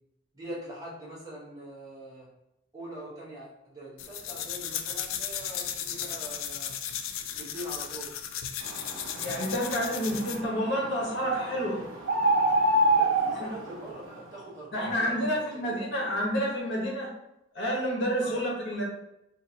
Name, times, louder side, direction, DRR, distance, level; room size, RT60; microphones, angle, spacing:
voice 1, 0.3-2.3 2.7-6.7 7.3-8.1 12.9-15.8 18.2-18.3, right 1 dB, 20° right, -7 dB, 1.1 m, -43 dB
sound 1, 4.0-10.5, left 9 dB, 85° left, 0.3 m, -35 dB
sound 2, 8.6-14.2, right 2 dB, 85° right, 0.8 m, -28 dB
voice 2, 9.2-11.8 13.4-13.5 14.7-17.1 17.5-18.8, equal, 65° left, -4 dB, 1.1 m, -29 dB
3.7 x 2.6 x 2.8 m, 0.85 s
head